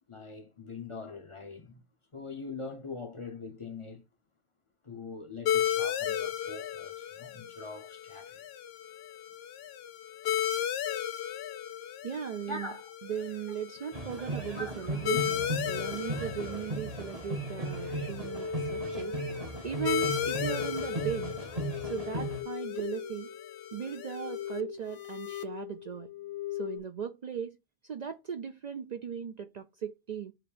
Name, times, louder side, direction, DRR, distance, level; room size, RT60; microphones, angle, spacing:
voice 1, 0.1-1.8 2.1-4.0 4.8-8.5 12.5-12.9 14.5-15.2, left 3 dB, 35° left, 0.7 m, -42 dB
sound 1, 5.5-24.6, left 10 dB, 75° left, 0.8 m, -36 dB
voice 2, 12.0-12.7 13.0-19.2 19.6-21.4 21.8-23.3 23.7-26.1 26.6-27.6 27.8-30.3, right 8 dB, 55° right, 0.5 m, -37 dB
sound 2, 13.9-22.4, right 2 dB, 40° right, 0.9 m, -37 dB
sound 3, 17.6-26.8, left 7 dB, 90° left, 1.1 m, -40 dB
7.3 x 2.6 x 4.9 m
omnidirectional pair, 1.1 m